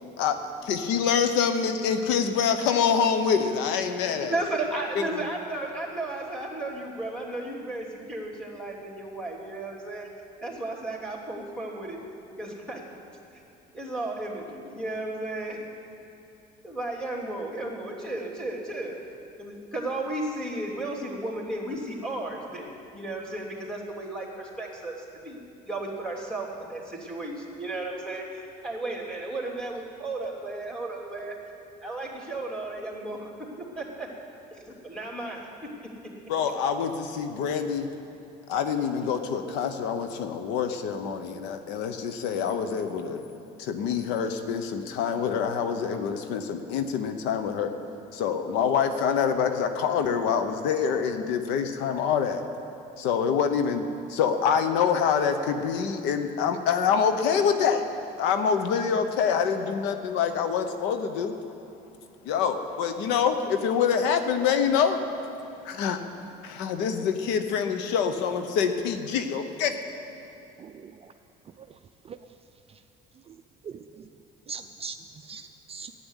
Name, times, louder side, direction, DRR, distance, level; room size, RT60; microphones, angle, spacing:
voice 1, 0.6-4.3 5.1-5.3 36.3-37.9 38.5-43.2 43.6-47.7 48.1-52.4 53.0-57.8 58.2-61.4 62.2-65.0 65.6-66.0 66.4-69.7, left 7 dB, 85° left, 8 dB, 0.9 m, -26 dB
voice 2, 4.2-10.1 10.4-12.0 12.4-12.8 13.3-13.4 13.7-15.6 16.6-19.0 19.4-31.4 31.8-33.3 33.6-34.1 34.5-35.5, right 2 dB, 5° left, -3 dB, 3.0 m, -34 dB
voice 3, 70.6-71.1 71.6-71.7 72.0-72.2 73.3-73.4 74.5-75.9, right 5 dB, 35° right, 8 dB, 0.4 m, -41 dB
12.0 x 9.7 x 8.1 m, 2.8 s
cardioid pair, 105°, 18 cm